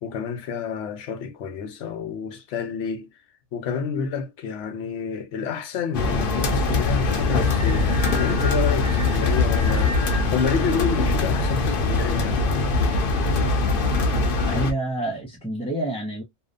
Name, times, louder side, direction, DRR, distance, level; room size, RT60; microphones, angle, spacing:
voice 1, 0.0-3.1 3.5-7.9 8.2-12.4, left 6 dB, 90° left, 1.0 m, -29 dB
sound 1, 5.9-14.7, left 3 dB, 60° left, 0.7 m, -22 dB
voice 2, 14.4-16.2, right 2 dB, 10° left, 0.3 m, -28 dB
2.7 x 2.1 x 2.4 m
omnidirectional pair, 1.2 m